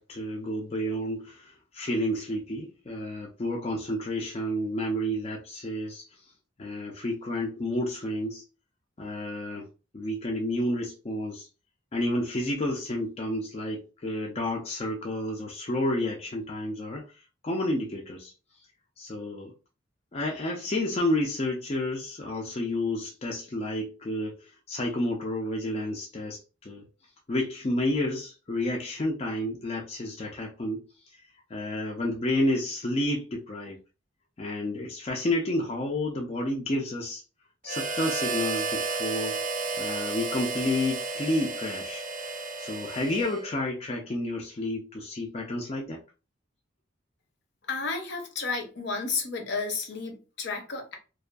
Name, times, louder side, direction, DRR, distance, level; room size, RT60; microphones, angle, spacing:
voice 1, 0.0-6.1 6.6-8.4 9.0-9.7 9.9-11.5 11.9-17.0 17.4-18.3 19.0-19.5 20.1-24.4 24.7-26.8 27.3-30.8 31.5-33.8 34.4-37.2 37.6-39.4 39.8-42.0 42.6-46.0, left 1 dB, 30° left, 0.4 m, -30 dB
Harmonica, 37.7-43.7, right 3 dB, 45° right, 0.4 m, -32 dB
voice 2, 47.7-50.9, left 4 dB, 65° left, 0.7 m, -32 dB
2.5 x 2.3 x 2.3 m
head